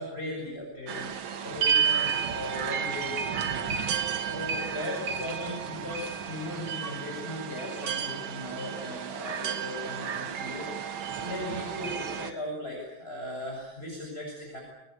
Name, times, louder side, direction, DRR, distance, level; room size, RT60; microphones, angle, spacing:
voice 1, 0.0-14.6, left 1 dB, 30° left, -2 dB, 7.6 m, -38 dB
sound 1, 0.9-12.3, right 7 dB, 80° right, 2.3 m, -32 dB
26.5 x 21.0 x 9.4 m, 0.92 s
omnidirectional pair, 2.1 m